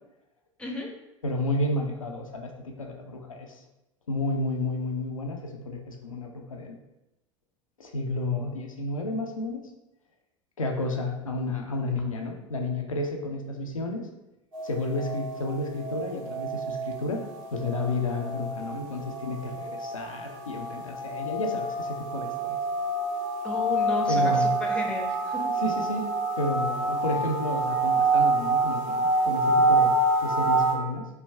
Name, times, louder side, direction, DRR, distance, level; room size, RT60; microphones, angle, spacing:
voice 1, 1.2-3.5 4.1-6.8 7.8-9.6 10.6-14.1 14.6-17.2 17.5-22.6 24.1-24.5 25.6-26.1 26.4-31.1, left 2 dB, 80° left, 2 dB, 0.4 m, -31 dB
sound 1, 14.5-30.7, right 2 dB, 75° right, 1.2 m, -27 dB
voice 2, 23.4-25.4, left 1 dB, 5° left, 0 dB, 0.6 m, -33 dB
3.2 x 2.2 x 3.3 m, 0.93 s
figure-of-eight pair, 80°, 17 cm